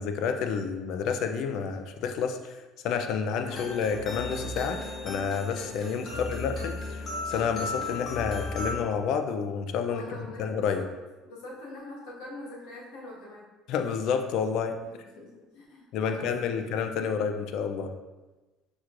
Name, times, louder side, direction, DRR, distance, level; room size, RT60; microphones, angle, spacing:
voice 1, 0.0-4.8 5.0-10.0 10.4-10.9 13.7-14.8 15.9-17.9, left 6 dB, 70° left, 7 dB, 0.4 m, -29 dB
sound 1, 3.5-8.7, left 2 dB, 40° left, 1.2 m, -35 dB
voice 2, 9.9-10.8 11.2-13.5 15.1-16.6, left 2 dB, 85° left, -5 dB, 1.4 m, -44 dB
6.1 x 3.0 x 2.5 m, 1.2 s
supercardioid pair, 90°, 0 cm